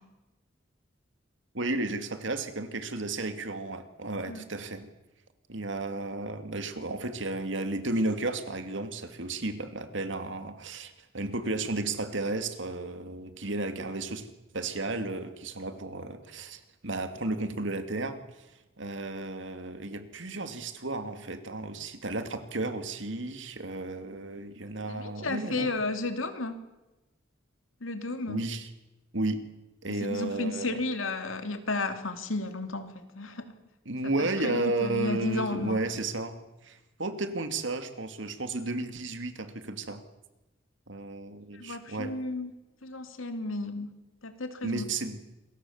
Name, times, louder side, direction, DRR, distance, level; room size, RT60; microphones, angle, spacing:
voice 1, 1.5-4.9 5.5-14.3 14.5-18.5 18.8-25.7 28.3-28.7 29.1-29.4 29.8-30.8 33.9-40.0 40.9-42.1 44.6-45.2, right 2 dB, 70° right, 8 dB, 2.5 m, -33 dB
voice 2, 24.9-26.6 27.8-28.4 30.0-33.5 34.2-35.8 41.5-42.5 42.8-43.9 44.2-44.9, left 2 dB, 90° left, 8 dB, 2.7 m, -33 dB
27.0 x 22.5 x 7.3 m, 1.0 s
head